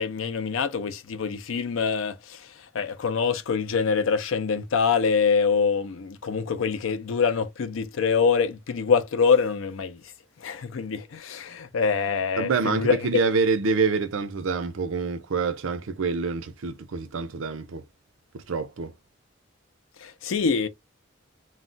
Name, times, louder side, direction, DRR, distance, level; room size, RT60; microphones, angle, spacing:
voice 1, 0.0-10.0 10.4-13.2 20.0-20.7, left 5 dB, 90° left, 0.5 m, -25 dB
voice 2, 12.4-17.8 18.3-18.9, right 4 dB, 90° right, 0.5 m, -26 dB
2.3 x 2.0 x 3.8 m
head